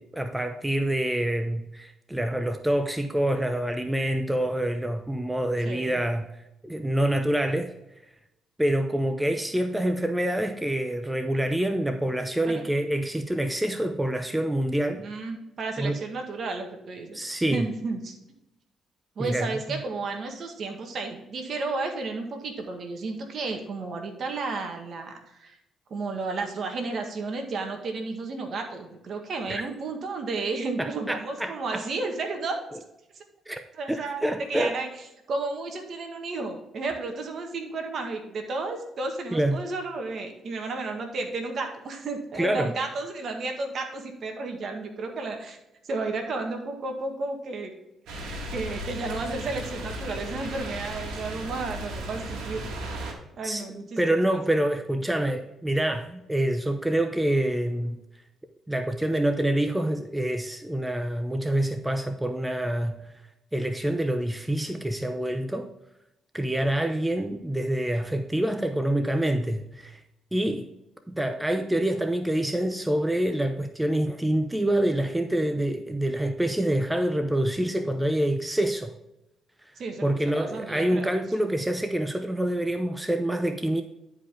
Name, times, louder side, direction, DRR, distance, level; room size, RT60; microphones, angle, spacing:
voice 1, 0.0-6.3 6.6-7.7 8.6-15.1 15.8-16.0 17.1-17.7 19.2-19.8 29.5-29.6 30.8-31.8 33.5-33.6 33.9-34.8 39.3-39.6 42.4-42.7 53.4-58.0 58.7-63.0 63.5-65.7 66.3-70.0 70.3-70.7 71.1-78.9 80.0-83.8, right 1 dB, 10° right, 7 dB, 0.6 m, -26 dB
voice 2, 5.6-6.0 12.5-12.6 15.0-18.1 19.1-25.6 25.9-32.6 33.1-33.2 33.8-34.9 35.3-45.6 45.8-47.7 48.5-52.6 53.4-54.4 79.8-81.1, right 3 dB, 55° right, 4 dB, 1.8 m, -33 dB
sound 1, 48.1-53.1, right 1 dB, 85° right, 2.0 m, -35 dB
10.5 x 5.1 x 3.7 m, 0.90 s
cardioid pair, 90°, 0 cm